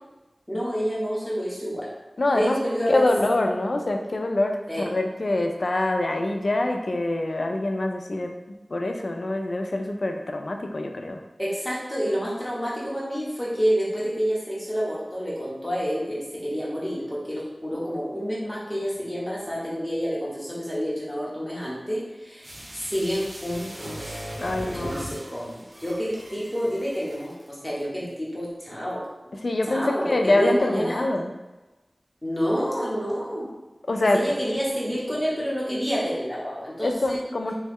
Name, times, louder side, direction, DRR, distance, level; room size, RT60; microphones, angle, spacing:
voice 1, 0.5-1.9 2.3-3.1 4.7-4.8 11.4-24.2 24.7-29.0 29.7-31.0 32.2-33.5 34.1-37.2, equal, 10° left, -6 dB, 1.0 m, -28 dB
voice 2, 2.2-2.6 2.9-8.3 8.7-11.2 24.4-25.1 29.4-31.3 33.9-34.2 36.8-37.5, left 2 dB, 70° left, 4 dB, 0.3 m, -25 dB
sound 1, 22.4-27.5 27.8-27.9, right 1 dB, 80° right, 0.8 m, -39 dB
3.0 x 2.2 x 3.4 m, 1.1 s
wide cardioid pair, 65°, 0 cm